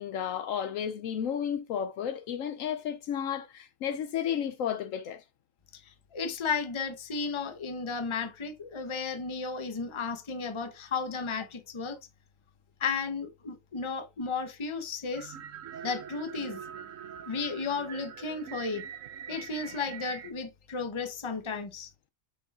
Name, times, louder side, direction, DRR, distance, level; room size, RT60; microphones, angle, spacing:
voice 1, 0.0-5.2, left 8 dB, 70° left, 0.9 m, -32 dB
voice 2, 5.7-12.0 12.8-15.4 15.8-16.6 17.3-18.8 19.3-21.9, left 5 dB, 25° left, 0.8 m, -34 dB
sound 1, 15.1-20.3, right 8 dB, 70° right, 1.1 m, -43 dB
6.8 x 6.0 x 2.4 m
omnidirectional pair, 1.5 m